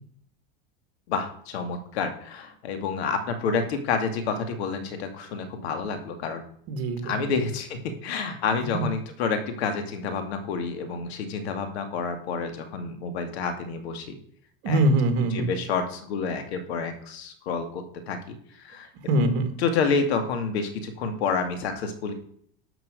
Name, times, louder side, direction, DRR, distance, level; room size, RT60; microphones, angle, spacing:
voice 1, 1.1-6.4 7.0-14.1 14.7-14.9 15.3-18.4 18.6-18.9 19.6-22.1, left 5 dB, 85° left, 7 dB, 2.4 m, -29 dB
voice 2, 6.7-7.4 8.7-8.8 14.6-15.5 19.1-19.5, right 1 dB, 55° right, 7 dB, 2.3 m, -23 dB
12.5 x 6.3 x 6.4 m, 0.63 s
supercardioid pair, 145°, 32 cm